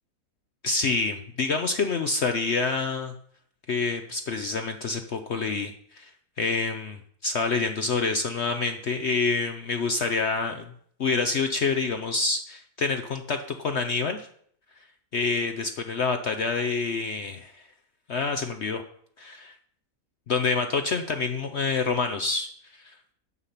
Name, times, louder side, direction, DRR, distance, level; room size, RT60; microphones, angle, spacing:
voice 1, 0.6-3.1 3.7-6.1 6.4-7.0 7.2-10.7 11.0-14.3 15.1-17.5 18.1-18.8 19.2-19.5 20.3-22.5 22.8-22.9, left 4 dB, 55° left, 7 dB, 0.9 m, -27 dB
9.8 x 5.7 x 8.2 m, 0.63 s
omnidirectional pair, 1.6 m